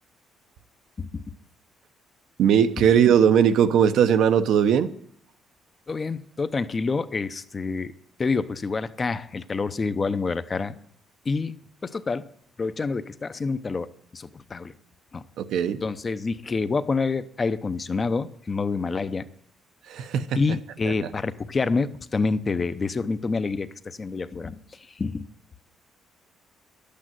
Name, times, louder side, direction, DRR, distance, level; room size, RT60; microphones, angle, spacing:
voice 1, 1.0-1.4 5.9-7.9 8.2-10.7 11.3-11.6 11.8-12.3 12.6-14.7 15.1-15.2 15.8-19.3 20.3-24.6 24.9-25.3, left 4 dB, 25° left, 13 dB, 0.6 m, -27 dB
voice 2, 2.4-4.9 15.4-15.8 19.9-20.4, right 8 dB, 70° right, 9 dB, 0.8 m, -19 dB
12.0 x 8.5 x 7.7 m, 0.64 s
cardioid pair, 150°, 0 cm